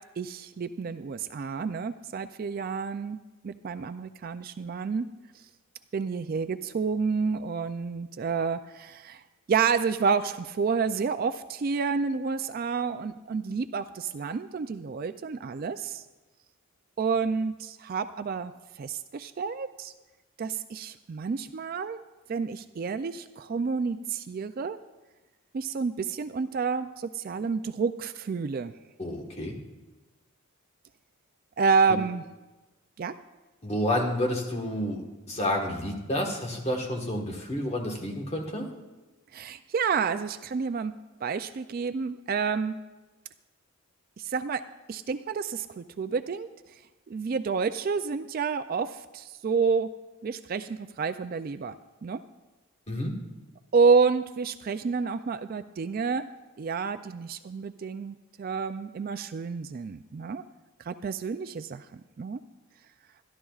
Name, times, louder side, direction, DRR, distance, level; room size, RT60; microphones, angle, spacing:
voice 1, 0.2-3.2 3.4-5.1 5.9-9.2 9.5-16.0 17.0-19.9 20.4-22.0 22.3-24.8 25.5-28.7 31.6-32.2 33.0-33.1 39.3-40.9 41.2-42.8 44.2-44.6 44.9-46.8 47.1-49.9 50.2-51.8 52.0-52.2 53.7-56.3 56.6-60.4 60.8-62.4, right 5 dB, 40° right, 11 dB, 0.3 m, -29 dB
voice 2, 29.0-29.6 33.6-38.7 52.9-53.1, left 1 dB, 30° left, 1 dB, 1.4 m, -30 dB
25.0 x 11.5 x 2.4 m, 1.1 s
head